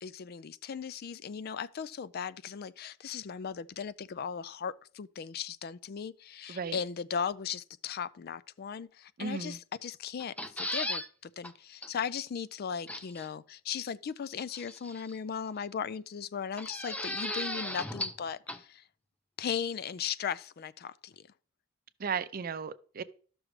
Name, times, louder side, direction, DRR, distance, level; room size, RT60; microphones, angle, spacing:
voice 1, 0.0-18.8 19.4-21.2, left 7 dB, 50° left, 0.4 m, -37 dB
voice 2, 9.2-9.6 22.0-23.0, right 6 dB, 50° right, 0.5 m, -35 dB
sound 1, 10.2-11.1 11.4-11.5 11.8-11.9 12.9-13.3 14.5-15.2 16.6-18.2 18.5-18.6, left 1 dB, 5° left, 0.6 m, -36 dB
13.0 x 6.2 x 3.2 m
head